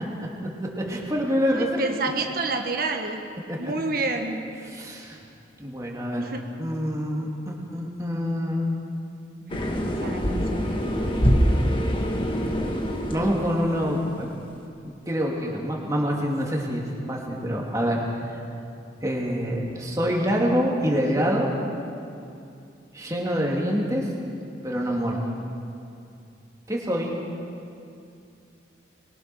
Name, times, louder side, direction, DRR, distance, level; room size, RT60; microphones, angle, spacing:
voice 1, 0.6-1.9 3.5-3.7 4.6-5.2 5.6-8.8 13.1-14.3 14.8-18.0 19.0-21.5 22.9-24.1 24.6-25.2 26.7-27.1, equal, 20° right, -2 dB, 3.0 m, -26 dB
voice 2, 1.4-3.2 3.6-4.4 6.2-6.5 9.5-10.7, right 3 dB, 50° right, 4 dB, 1.4 m, -29 dB
sound 1, 9.5-14.1, equal, 25° left, 1.9 m, -25 dB
24.5 x 22.0 x 6.3 m, 2.6 s
head